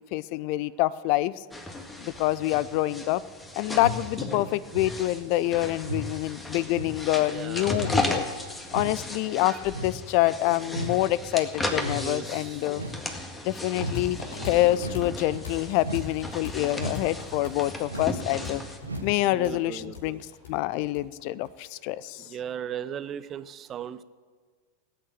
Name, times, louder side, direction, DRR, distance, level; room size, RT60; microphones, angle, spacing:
voice 1, 0.1-1.3 2.0-3.2 3.6-8.3 8.7-12.8 13.4-14.2 14.5-18.6 19.0-20.2 20.5-22.2, left 16 dB, 45° left, 20 dB, 0.4 m, -26 dB
sound 1, 1.5-18.8, left 1 dB, 10° left, 1.8 m, -36 dB
sound 2, 3.7-4.1 4.7-5.0 5.8-6.1 6.7-7.0 7.7-8.0 8.7-9.0 9.7-10.0 10.7-11.0 11.8-12.0 12.7-13.1 13.7-14.0 14.8-15.1 15.8-16.1 16.7-17.1 17.8-18.2 18.8-19.1 19.8-19.9, equal, 80° right, 1.8 m, -35 dB
voice 2, 7.3-7.8 11.9-12.8 19.2-20.2 22.2-24.0, right 9 dB, 30° right, 15 dB, 0.7 m, -38 dB
sound 3, 13.9-21.5, left 4 dB, 65° left, 2.9 m, -40 dB
18.0 x 8.9 x 8.8 m, 1.5 s
figure-of-eight pair, 90°, 0 cm